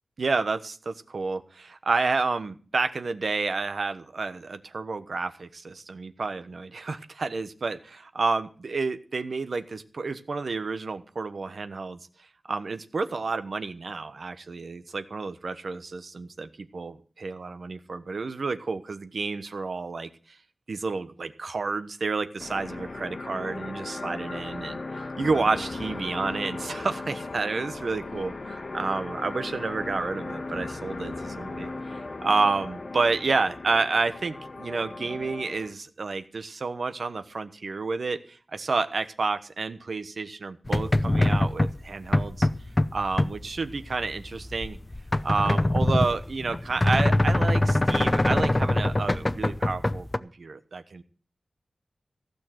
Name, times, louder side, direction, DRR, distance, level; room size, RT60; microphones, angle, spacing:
voice 1, 0.2-12.0 12.5-20.1 20.7-24.8 25.2-42.5 42.9-44.8 45.2-51.0, right 4 dB, 75° right, 10 dB, 1.1 m, -30 dB
sound 1, 22.4-35.7, left 3 dB, 55° left, 1.1 m, -37 dB
sound 2, 40.7-50.2, left 1 dB, 25° left, 0.7 m, -24 dB
15.0 x 6.6 x 7.7 m, 0.40 s
wide cardioid pair, 90°, 0 cm